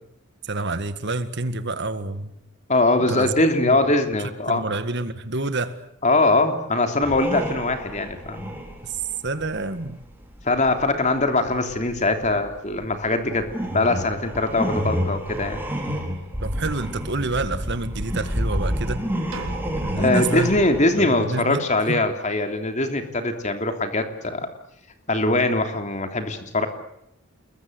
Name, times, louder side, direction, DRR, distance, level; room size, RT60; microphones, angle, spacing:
voice 1, 0.4-2.3 3.1-3.3 3.6-3.8 4.5-5.8 8.8-10.0 16.4-19.1 19.8-20.6 21.0-22.0, right 3 dB, 55° right, 11 dB, 1.9 m, -28 dB
voice 2, 2.7-4.6 6.0-8.5 10.4-13.5 13.7-15.6 20.0-24.5 25.1-26.7, left 2 dB, 35° left, 6 dB, 3.2 m, -22 dB
sound 1, 7.0-10.9 11.2-20.9, equal, 10° right, 4.6 m, -29 dB
sound 2, 19.3-21.2, right 3 dB, 75° right, 3.7 m, -39 dB
29.5 x 22.0 x 8.1 m, 0.78 s
head